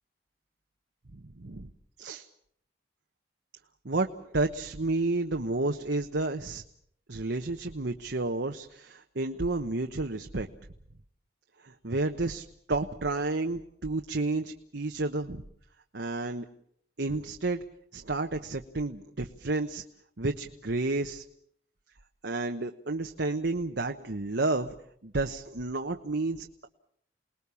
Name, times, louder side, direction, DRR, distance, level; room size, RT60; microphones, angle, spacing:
voice 1, 1.1-1.7 2.0-2.3 3.8-6.6 7.1-10.5 11.6-15.4 15.9-16.4 17.0-17.6 17.9-19.8 20.2-21.2 22.2-24.7 25.0-26.7, right 2 dB, 70° right, 4 dB, 1.1 m, -31 dB
29.0 x 20.0 x 7.1 m, 0.69 s
head